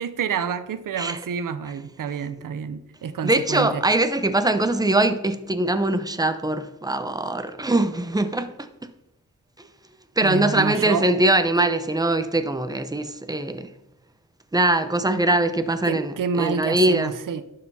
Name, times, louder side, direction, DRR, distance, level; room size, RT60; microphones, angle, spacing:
voice 1, 0.0-3.8 10.2-11.1 15.9-17.4, right 6 dB, 80° right, 0.6 m, -28 dB
voice 2, 3.2-8.7 10.2-13.7 14.5-17.1, right 2 dB, 10° right, 0.7 m, -22 dB
11.0 x 6.7 x 2.8 m
cardioid pair, 55°, 32 cm